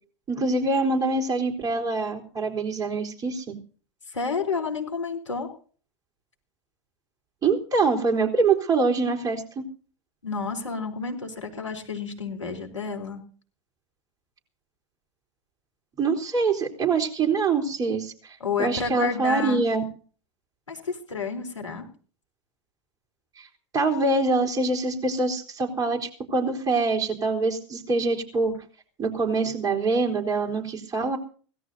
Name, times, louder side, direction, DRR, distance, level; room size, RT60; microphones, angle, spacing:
voice 1, 0.3-3.5 7.4-9.7 16.0-18.1 18.6-19.8 23.7-28.5 29.0-31.2, right 3 dB, 25° right, 0 dB, 3.9 m, -24 dB
voice 2, 4.1-5.5 10.2-13.2 18.4-19.6 20.7-21.9, left 5 dB, 90° left, 3 dB, 3.7 m, -30 dB
24.0 x 17.0 x 2.7 m, 0.42 s
figure-of-eight pair, 90°, 15 cm